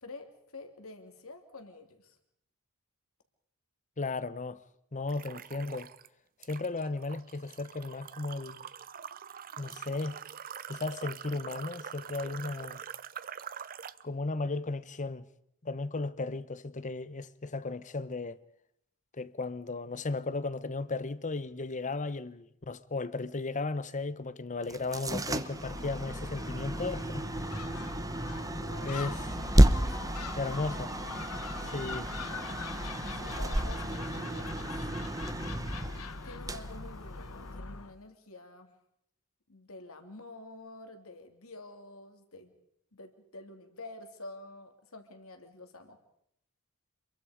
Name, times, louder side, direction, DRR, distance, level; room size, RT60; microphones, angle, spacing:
voice 1, 0.0-2.2 28.6-29.0 29.2-30.9 31.8-32.5 33.1-34.7 36.2-38.7 39.5-42.5 42.9-46.0, left 2 dB, 70° left, 3.0 m, -49 dB
voice 2, 4.0-4.6 4.9-5.9 6.5-8.6 9.6-10.2 10.7-12.8 14.0-15.2 15.6-18.4 19.2-27.6 28.8-29.2 30.4-30.9 31.6-32.1, left 3 dB, 35° left, 0.9 m, -35 dB
sound 1, 5.1-6.1 6.4-14.0, right 8 dB, 40° right, 0.7 m, -44 dB
sound 2, 24.6-37.6, right 1 dB, 15° right, 0.9 m, -31 dB
Gull seagull, 25.5-37.9, left 3 dB, 85° left, 1.4 m, -41 dB
27.5 x 22.5 x 5.1 m
head